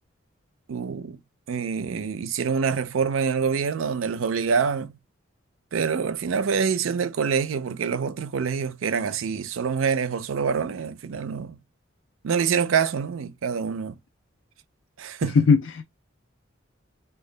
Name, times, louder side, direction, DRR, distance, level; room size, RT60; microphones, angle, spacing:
voice 1, 0.7-1.2 1.5-4.9 5.7-11.6 12.2-13.9 15.0-15.4, right 6 dB, 85° right, 0.4 m, -26 dB
voice 2, 15.2-15.8, left 5 dB, 75° left, 0.4 m, -19 dB
3.7 x 2.3 x 3.2 m
head